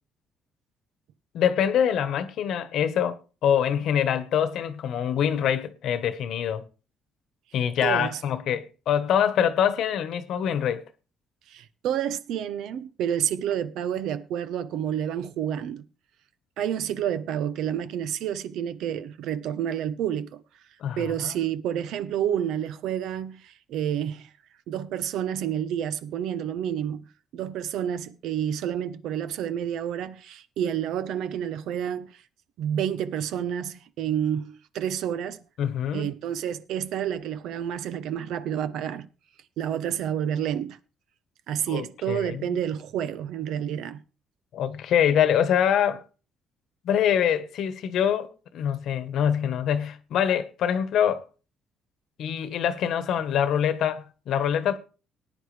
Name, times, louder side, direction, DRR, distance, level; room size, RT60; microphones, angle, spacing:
voice 1, 1.3-6.6 7.5-10.8 20.8-21.3 35.6-36.1 41.7-42.6 44.5-46.0 46.8-51.3 52.2-54.8, left 9 dB, 65° left, 1.2 m, -25 dB
voice 2, 7.8-8.2 11.5-15.9 16.6-20.4 21.0-24.3 24.7-27.0 27.3-32.2 32.6-35.4 35.9-39.1 39.6-40.8 41.5-44.0, right 9 dB, 80° right, 0.9 m, -29 dB
18.5 x 9.7 x 3.3 m
cardioid pair, 135°, 0 cm